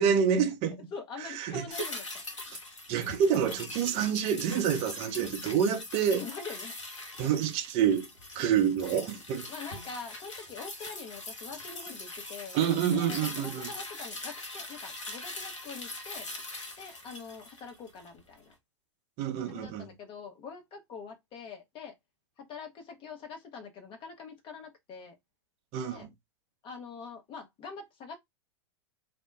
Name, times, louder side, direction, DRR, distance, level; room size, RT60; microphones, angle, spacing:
voice 1, 0.0-0.8 1.2-1.7 2.9-6.2 7.2-8.1 8.3-9.5 12.5-13.7 19.2-19.9 25.7-26.1, right 8 dB, 40° right, 0.7 m, -27 dB
voice 2, 0.9-2.2 6.1-6.7 9.5-12.6 12.9-16.3 16.8-18.5 19.5-21.9 22.4-25.1 25.9-26.1 26.6-28.2, left 5 dB, 35° left, 1.0 m, -44 dB
sound 1, 1.7-18.2 18.5-18.6, left 2 dB, 80° left, 1.2 m, -42 dB
2.8 x 2.2 x 3.3 m
hypercardioid pair, 100°, 16 cm